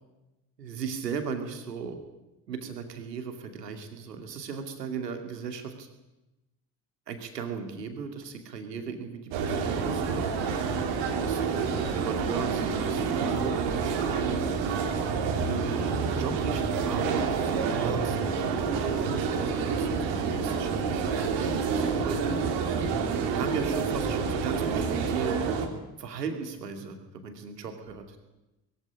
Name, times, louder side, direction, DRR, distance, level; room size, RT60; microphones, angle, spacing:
voice 1, 0.6-2.0 2.5-5.9 7.1-10.3 11.2-14.7 15.4-22.5 23.3-25.4 26.0-28.2, right 5 dB, 80° right, 6 dB, 2.6 m, -37 dB
sound 1, 9.3-25.7, right 5 dB, 60° right, 3.2 m, -28 dB
22.0 x 15.0 x 9.9 m, 1.0 s
figure-of-eight pair, 45°, 48 cm